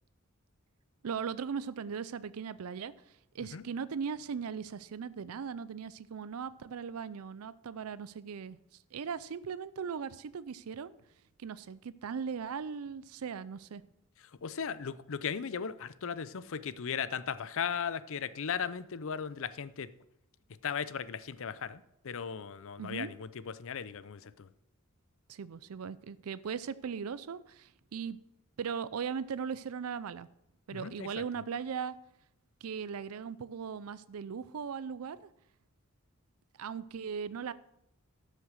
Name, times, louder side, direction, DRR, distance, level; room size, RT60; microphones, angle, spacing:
voice 1, 1.0-8.6 8.9-10.9 11.4-13.8 22.8-23.1 25.3-28.2 28.6-30.3 30.7-32.0 32.6-35.3 36.6-37.5, right 6 dB, 90° right, 0.5 m, -38 dB
voice 2, 14.4-19.9 20.6-24.5 30.7-31.2, left 7 dB, 65° left, 0.6 m, -37 dB
12.0 x 6.5 x 6.5 m
head